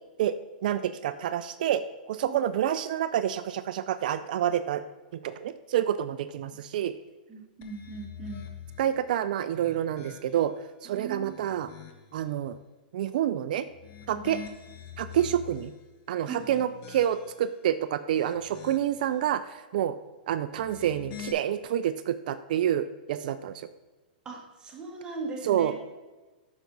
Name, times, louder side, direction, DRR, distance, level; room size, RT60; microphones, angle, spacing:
voice 1, 0.6-1.8 2.1-4.8 5.1-6.9 8.8-10.5 10.8-11.7 12.1-12.6 12.9-13.7 14.1-14.4 15.0-15.7 16.1-19.9 20.3-23.6 25.4-25.7, right 10 dB, 60° right, 11 dB, 0.4 m, -28 dB
voice 2, 7.3-8.4 10.8-11.5 14.1-14.2 16.3-16.6 24.2-25.7, right 4 dB, 15° right, 0 dB, 1.5 m, -39 dB
sound 1, 7.6-8.9 9.4-10.6 11.1-12.2 13.7-15.8 16.3-17.5 17.9-19.1 20.5-21.3, left 9 dB, 40° left, 0.9 m, -45 dB
8.2 x 6.0 x 4.0 m, 1.2 s
hypercardioid pair, 140°, 5 cm